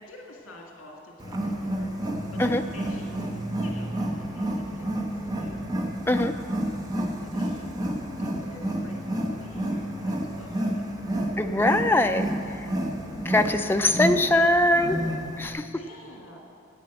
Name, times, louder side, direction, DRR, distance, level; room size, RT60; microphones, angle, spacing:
voice 1, 0.0-2.1 2.3-2.4 2.7-3.3 3.6-5.7 7.1-11.8 13.7-13.8 15.8-16.4, left 1 dB, 80° left, -1 dB, 1.9 m, -49 dB
Wild animals, 1.2-15.5, right 1 dB, 20° right, 1.0 m, -30 dB
voice 2, 11.4-12.3 13.2-15.0 15.4-15.7, left 1 dB, 10° left, 6 dB, 0.4 m, -22 dB
9.9 x 8.3 x 7.7 m, 2.4 s
head